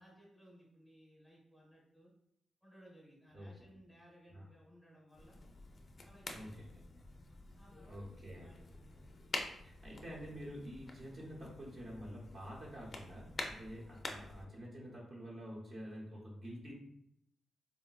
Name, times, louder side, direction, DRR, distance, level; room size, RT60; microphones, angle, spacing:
voice 1, 0.0-2.1 2.6-5.4 6.0-6.6 7.5-8.6 8.9-9.1, equal, ahead, -4 dB, 0.9 m, -61 dB
sound 1, 5.1-14.4, left 2 dB, 35° left, 0.4 m, -48 dB
voice 2, 6.3-6.7 6.9-7.0 7.9-8.5 9.6-16.7, equal, 45° right, -4 dB, 0.7 m, -48 dB
3.8 x 2.1 x 2.3 m, 0.75 s
wide cardioid pair, 150°, 0 cm